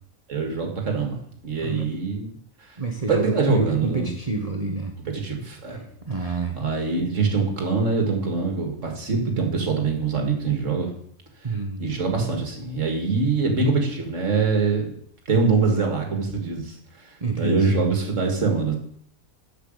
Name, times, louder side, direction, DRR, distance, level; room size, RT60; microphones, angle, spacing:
voice 1, 0.3-2.3 3.1-4.1 5.1-5.8 6.2-10.9 11.5-14.9 15.3-16.7 17.0-17.1 17.4-18.7, right 4 dB, 60° right, 2 dB, 2.4 m, -24 dB
voice 2, 2.8-4.9 6.1-6.6 11.4-11.9 17.2-17.8, right 3 dB, 30° right, 3 dB, 1.0 m, -27 dB
8.3 x 6.9 x 7.9 m, 0.66 s
omnidirectional pair, 1.5 m